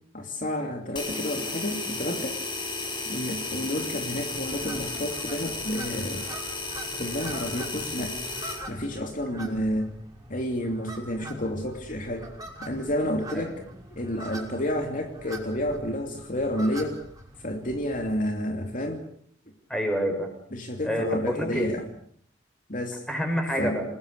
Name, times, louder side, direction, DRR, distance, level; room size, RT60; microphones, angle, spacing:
voice 1, 0.1-2.4 3.1-6.2 6.9-8.2 8.7-9.9 10.3-12.3 12.6-13.5 13.9-17.0 17.4-19.0 20.5-21.8 22.7-23.0 23.6-23.8, equal, 45° left, 3 dB, 2.8 m, -30 dB
sound 1, 1.0-8.7, left 3 dB, 25° left, 5.8 m, -34 dB
sound 2, 4.3-18.2, right 1 dB, 20° right, 6.0 m, -43 dB
voice 2, 19.7-20.3 20.8-21.8 23.1-23.8, equal, 5° left, 3 dB, 6.8 m, -28 dB
29.5 x 20.0 x 6.8 m, 0.62 s
head